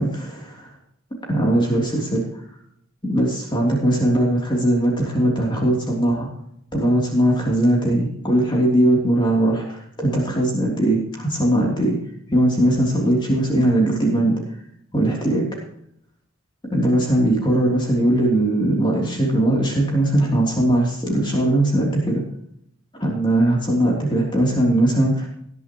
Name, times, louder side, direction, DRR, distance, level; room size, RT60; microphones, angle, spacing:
voice 1, 0.0-0.7 1.3-2.2 3.1-6.3 6.7-12.0 12.3-14.3 14.9-15.4 16.7-22.2 23.0-25.3, right 1 dB, 25° left, -2 dB, 3.2 m, -19 dB
18.5 x 10.5 x 3.1 m, 0.71 s
head